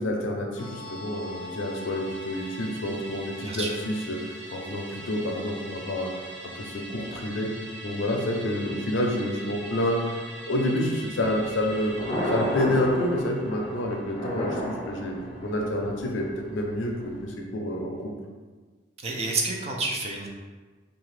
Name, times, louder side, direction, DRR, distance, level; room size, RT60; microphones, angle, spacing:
voice 1, 0.0-4.2 4.5-6.1 6.6-7.5 7.8-10.2 10.5-11.9 12.3-18.1, left 1 dB, 75° left, 1 dB, 0.5 m, -28 dB
Musical instrument, 0.6-15.2 15.6-15.7, equal, 80° right, 1.1 m, -42 dB
Thunder, 11.4-17.2, equal, 30° left, 0.6 m, -33 dB
voice 2, 19.0-20.3, right 3 dB, 35° right, 0 dB, 0.4 m, -29 dB
2.8 x 2.4 x 3.1 m, 1.4 s
head